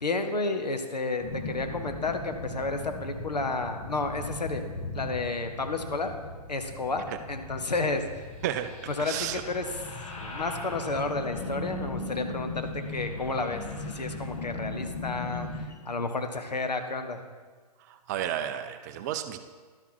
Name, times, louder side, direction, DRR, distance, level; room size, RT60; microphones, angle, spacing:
voice 1, 0.0-4.6 4.9-6.1 6.5-8.3 8.9-9.7 10.2-17.2, left 3 dB, 80° left, 6 dB, 1.1 m, -31 dB
sound 1, 1.2-15.7, left 2 dB, 50° left, 1.5 m, -38 dB
voice 2, 9.0-9.4 17.8-19.4, right 11 dB, 25° right, 9 dB, 0.4 m, -32 dB
11.5 x 7.0 x 4.6 m, 1.5 s
figure-of-eight pair, 125°, 21 cm